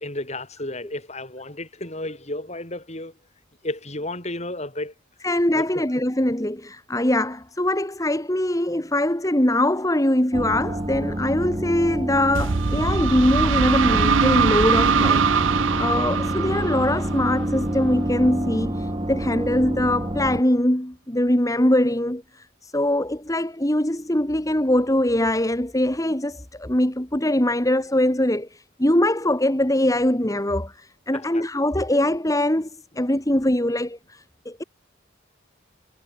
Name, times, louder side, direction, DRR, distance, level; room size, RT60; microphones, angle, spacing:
voice 1, 0.0-3.1 3.6-4.9 5.5-5.9 31.1-31.4, left 1 dB, 35° left, 7.8 m, -32 dB
voice 2, 5.2-32.7 33.0-34.6, left 1 dB, 15° left, 2.1 m, -22 dB
sound 1, 10.3-20.4, right 1 dB, 25° right, 1.8 m, -28 dB
sound 2, 12.3-18.0, right 5 dB, 75° right, 0.7 m, -22 dB
head